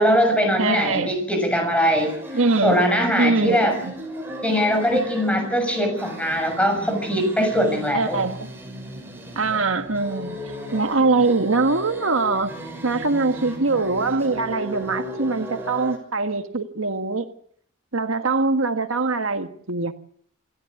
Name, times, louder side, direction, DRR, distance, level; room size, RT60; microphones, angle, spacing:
voice 1, 0.0-2.1 2.6-3.8 4.4-8.2, equal, 5° left, 6.8 m, -21 dB
voice 2, 0.6-1.2 2.3-2.8 3.2-3.9 4.9-5.0 7.9-8.5 9.3-10.4 10.7-12.6 12.8-17.3 17.9-19.9, right 3 dB, 80° right, 1.6 m, -23 dB
sound 1, 2.0-16.0, right 1 dB, 10° right, 6.3 m, -36 dB
28.0 x 13.0 x 8.5 m
head